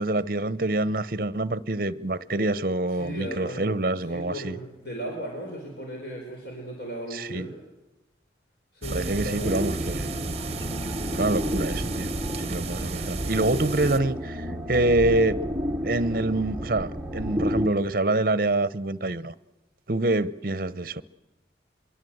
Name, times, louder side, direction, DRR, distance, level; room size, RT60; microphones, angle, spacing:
voice 1, 0.0-4.5 7.1-7.5 8.9-10.1 11.2-12.1 12.4-15.4 15.8-19.3 19.9-21.0, right 2 dB, 50° right, 0.8 m, -26 dB
voice 2, 2.9-3.7 4.0-7.5 8.7-9.7, equal, 65° left, 5.2 m, -36 dB
sound 1, 8.8-14.0, right 3 dB, 35° right, 1.2 m, -33 dB
sound 2, 9.4-17.7, equal, 10° right, 1.1 m, -31 dB
24.0 x 23.5 x 7.9 m
head